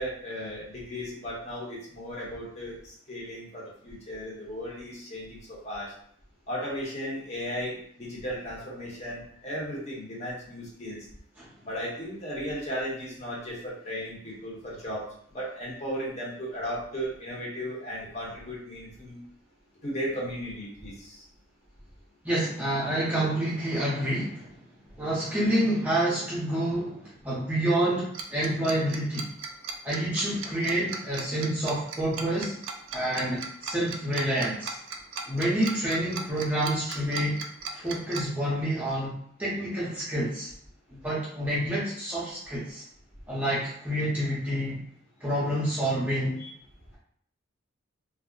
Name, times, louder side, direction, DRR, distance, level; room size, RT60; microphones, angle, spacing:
voice 1, 0.0-5.9 6.5-11.1 11.6-15.1 15.3-19.2 19.8-21.2 46.4-46.5, equal, 30° left, -5 dB, 0.9 m, -36 dB
voice 2, 22.2-24.5 25.0-29.3 29.8-32.6 32.9-34.7 35.3-37.4 37.7-39.1 39.4-40.5 41.0-42.8 43.3-44.8 45.2-46.4, right 1 dB, 5° right, -8 dB, 0.6 m, -28 dB
Tick-tock, 28.1-38.2, right 5 dB, 75° right, 0.4 m, -36 dB
2.3 x 2.0 x 3.7 m, 0.63 s
head